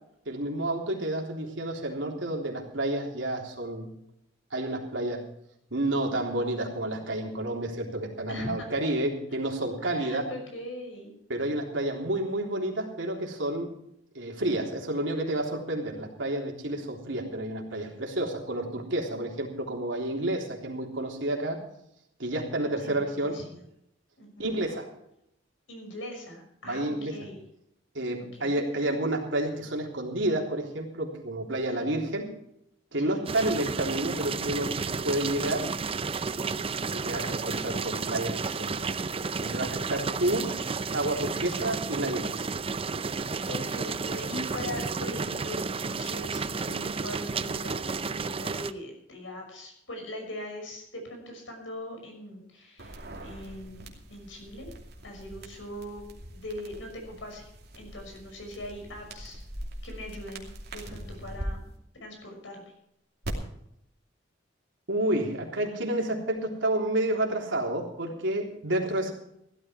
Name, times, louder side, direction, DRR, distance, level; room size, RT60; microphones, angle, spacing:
voice 1, 0.3-3.9 4.5-5.2 5.7-10.3 11.3-13.7 14.2-21.6 22.2-23.4 24.4-24.9 26.6-27.1 28.0-32.3 32.9-34.8 35.0-35.7 37.0-39.0 39.4-40.5 40.9-42.4 64.9-69.1, right 1 dB, 80° right, 0 dB, 3.5 m, -30 dB
voice 2, 8.3-8.7 9.9-11.1 22.5-23.6 24.2-24.6 25.7-27.4 28.3-28.9 31.8-31.9 33.0-33.3 36.5-36.7 43.2-54.7 55.0-57.5 57.8-59.4 59.8-61.7 62.0-62.7, left 1 dB, 85° left, 3 dB, 6.1 m, -41 dB
sound 1, 33.3-48.7, right 4 dB, 30° right, 0.6 m, -32 dB
sound 2, 52.8-61.5 63.2-63.3, right 1 dB, 60° right, 2.7 m, -43 dB
16.0 x 13.0 x 4.6 m, 0.78 s
head